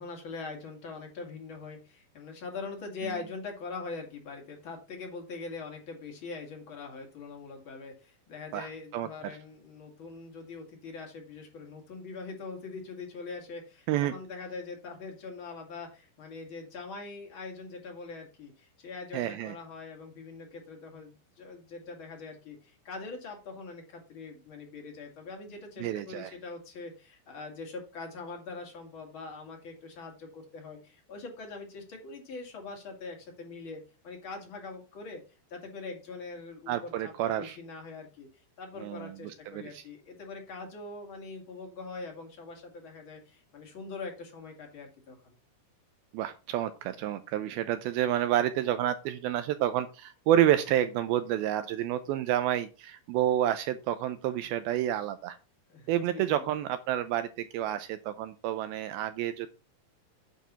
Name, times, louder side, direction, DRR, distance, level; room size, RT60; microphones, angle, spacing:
voice 1, 0.0-35.2 35.5-38.3 38.6-45.4 55.7-56.4, left 4 dB, 35° left, 1 dB, 2.5 m, -43 dB
voice 2, 8.5-9.1 13.9-14.1 19.1-19.6 25.8-26.3 36.7-37.6 38.8-39.8 46.1-55.4 55.9-57.3 57.5-59.5, right 12 dB, 80° right, 11 dB, 2.2 m, -29 dB
9.1 x 4.6 x 5.5 m, 0.32 s
omnidirectional pair, 4.7 m